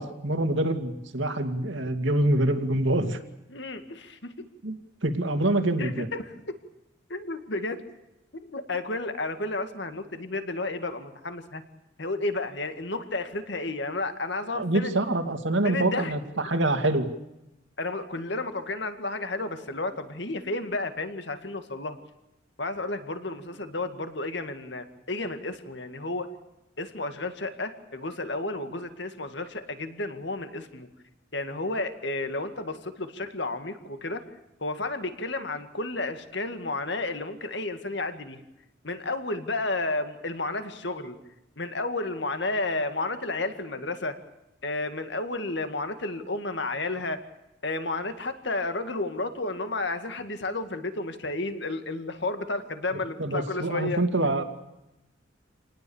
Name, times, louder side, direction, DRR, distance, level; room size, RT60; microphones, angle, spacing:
voice 1, 0.0-3.2 4.6-4.7 5.0-6.1 14.5-17.1 53.2-54.4, right 1 dB, 70° right, 6 dB, 2.4 m, -25 dB
voice 2, 3.5-4.3 5.8-6.5 7.1-7.8 8.3-11.6 12.0-14.9 15.6-16.1 17.8-22.0 22.6-26.3 26.8-30.9 31.3-34.2 34.6-38.4 38.8-41.2 41.6-44.2 44.6-47.2 47.6-54.0, left 2 dB, 60° left, 8 dB, 2.1 m, -32 dB
28.0 x 19.0 x 7.2 m, 0.92 s
head